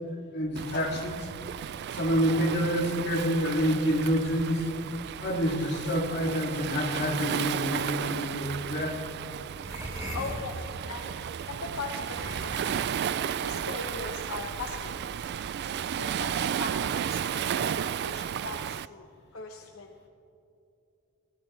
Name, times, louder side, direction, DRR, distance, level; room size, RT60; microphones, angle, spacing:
voice 1, 0.3-1.3 1.9-4.7 5.2-9.0, equal, 50° left, -1 dB, 2.5 m, -28 dB
Waves surf, 0.6-18.9, right 8 dB, 50° right, 0.3 m, -33 dB
sound 1, 9.6-11.1 11.8-15.2, right 1 dB, 15° right, 3.1 m, -40 dB
voice 2, 10.1-11.2 11.5-12.8 13.4-15.2 16.0-17.3 17.6-19.1 19.3-20.0, left 4 dB, 80° left, 3 dB, 1.1 m, -39 dB
20.5 x 17.5 x 3.3 m, 2.8 s
head